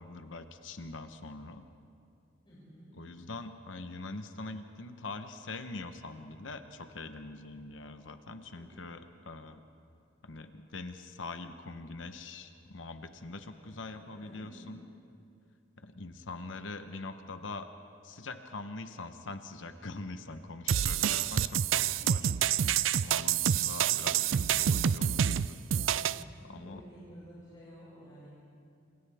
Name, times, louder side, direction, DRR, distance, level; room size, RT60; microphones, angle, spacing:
voice 1, 0.0-1.6 2.9-9.6 10.2-14.8 15.8-17.7 18.0-22.3 23.0-25.6 26.5-26.8, left 3 dB, 70° left, 8 dB, 1.0 m, -43 dB
voice 2, 2.4-3.0 8.5-8.7 13.5-13.7 14.0-14.7 25.7-28.3, equal, 30° left, -11 dB, 7.0 m, -52 dB
sound 1, 20.7-26.2, right 9 dB, 85° right, 0.4 m, -27 dB
29.5 x 27.0 x 3.5 m, 2.5 s
head